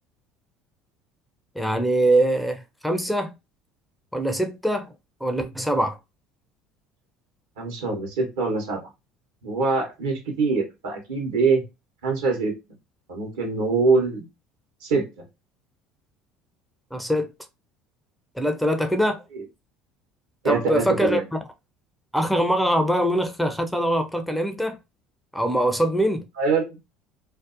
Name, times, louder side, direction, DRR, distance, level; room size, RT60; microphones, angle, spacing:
voice 1, 1.6-3.3 4.1-4.9 5.2-6.0 16.9-17.3 18.4-19.2 20.4-21.2 22.1-24.8 25.3-26.2, right 1 dB, ahead, 0.4 m, -23 dB
voice 2, 7.6-8.8 9.4-11.6 12.0-12.5 13.1-14.3 14.8-15.0 20.4-21.2 26.4-26.8, right 4 dB, 80° right, 0.9 m, -23 dB
2.6 x 2.0 x 2.5 m
hypercardioid pair, 70°, 0 cm